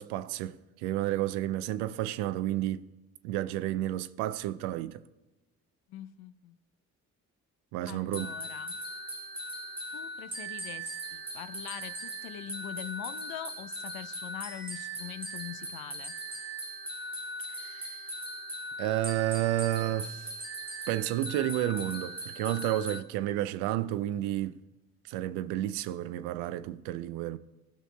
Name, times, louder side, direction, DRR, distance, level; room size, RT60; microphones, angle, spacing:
voice 1, 0.0-2.9 3.2-5.0 7.7-8.3 17.6-18.0 18.8-20.3 20.9-24.6 25.1-27.4, right 14 dB, 75° right, 0.5 m, -31 dB
voice 2, 5.9-6.6 7.9-8.8 9.9-16.1, left 12 dB, 65° left, 0.5 m, -43 dB
sound 1, 8.1-23.0, right 1 dB, 15° right, 1.3 m, -39 dB
18.5 x 6.2 x 2.2 m
hypercardioid pair, 40°, 40 cm